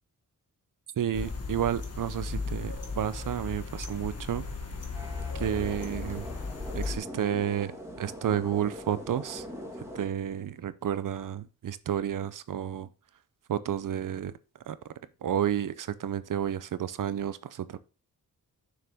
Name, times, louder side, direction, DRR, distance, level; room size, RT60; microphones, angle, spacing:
voice 1, 1.0-4.4 5.3-6.3 6.7-9.4 9.9-12.9 13.5-14.3 14.7-14.8 15.2-17.8, right 9 dB, 70° right, 0.6 m, -31 dB
sound 1, 1.1-7.0, left 3 dB, 45° left, 1.5 m, -36 dB
sound 2, 4.9-10.1, equal, 10° right, 1.8 m, -42 dB
6.8 x 6.6 x 3.5 m
wide cardioid pair, 165°, 34 cm